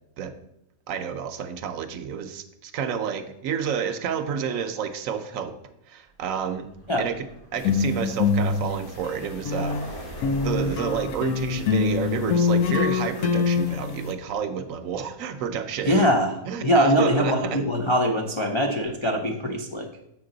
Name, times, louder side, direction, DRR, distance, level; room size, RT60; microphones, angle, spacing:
voice 1, 0.9-5.6 5.9-6.7 7.0-7.2 7.5-16.1 16.5-17.6, right 7 dB, 70° right, 9 dB, 0.9 m, -30 dB
Vehicle, 6.2-15.0, right 1 dB, 70° left, 3.2 m, -44 dB
sound 1, 7.6-9.9 10.2-14.1, left 5 dB, 85° left, 1.2 m, -24 dB
voice 2, 15.9-19.9, equal, 50° left, 0 dB, 0.3 m, -22 dB
7.3 x 5.9 x 3.8 m, 0.82 s
omnidirectional pair, 1.6 m